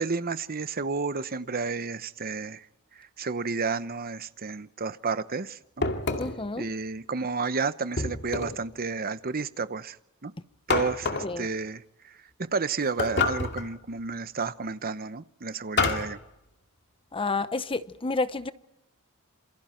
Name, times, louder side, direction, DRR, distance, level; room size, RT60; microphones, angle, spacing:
voice 1, 0.0-2.7 2.9-5.9 6.6-10.0 10.2-10.3 10.7-16.2, right 4 dB, 45° right, 0.9 m, -31 dB
sound 1, 5.8-6.5 8.0-8.7 10.7-11.4 13.0-13.7 15.8-16.2, left 4 dB, 55° left, 2.3 m, -28 dB
voice 2, 6.2-6.7 11.2-11.5 17.1-18.5, left 3 dB, 25° left, 0.8 m, -30 dB
27.5 x 27.5 x 4.5 m
head